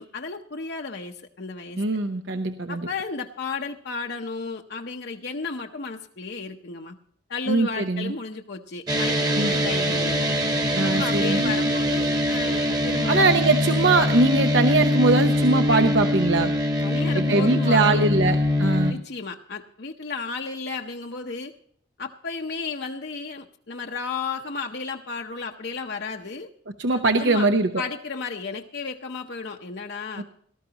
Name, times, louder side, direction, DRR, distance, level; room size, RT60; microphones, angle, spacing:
voice 1, 0.0-1.8 2.7-6.9 7.3-10.3 10.8-13.3 16.8-18.1 18.9-21.5 22.0-26.5 27.2-27.5 27.8-30.2, left 4 dB, 55° left, 2 dB, 0.8 m, -33 dB
voice 2, 1.8-2.9 7.5-8.1 9.4-9.5 10.7-11.5 13.1-16.5 17.1-19.0 26.8-27.7 30.2-30.3, right 3 dB, 70° right, 7 dB, 0.9 m, -21 dB
sound 1, 8.9-18.9, left 1 dB, 20° right, 1.3 m, -23 dB
18.5 x 13.0 x 2.9 m, 0.63 s
head